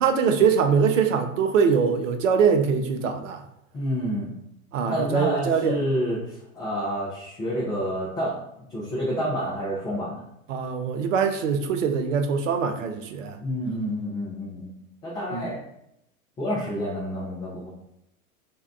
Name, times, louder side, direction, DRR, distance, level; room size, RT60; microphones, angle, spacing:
voice 1, 0.0-3.4 4.7-5.8 10.5-13.4 15.3-15.5, right 6 dB, 60° right, 6 dB, 0.6 m, -23 dB
voice 2, 3.7-4.4 4.8-10.2 13.4-14.7 15.0-15.6 16.4-17.7, equal, 10° left, -8 dB, 0.4 m, -29 dB
2.7 x 2.2 x 3.4 m, 0.81 s
figure-of-eight pair, 95°, 44 cm